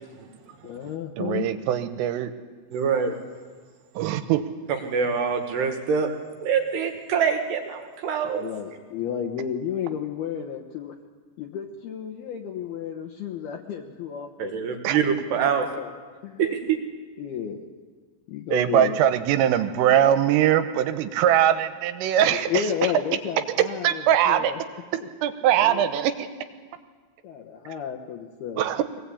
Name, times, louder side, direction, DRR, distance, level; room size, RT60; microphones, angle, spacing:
voice 1, 0.6-1.5 8.4-11.0 11.4-14.5 15.1-15.9 16.2-16.4 17.2-17.7 18.3-19.0 22.2-24.6 25.0-25.1 25.6-25.8 27.2-29.0, left 8 dB, 70° left, 0 dB, 2.5 m, -32 dB
voice 2, 1.2-2.3 4.0-4.4 14.8-15.0 18.5-22.5 23.8-24.5 25.2-26.3 28.6-29.0, right 10 dB, 80° right, 9 dB, 3.4 m, -21 dB
voice 3, 2.7-3.2 4.7-6.1 6.4-8.5 14.4-15.7 16.4-16.8, right 6 dB, 65° right, 4 dB, 3.0 m, -25 dB
23.0 x 19.0 x 8.4 m, 1.5 s
omnidirectional pair, 6.0 m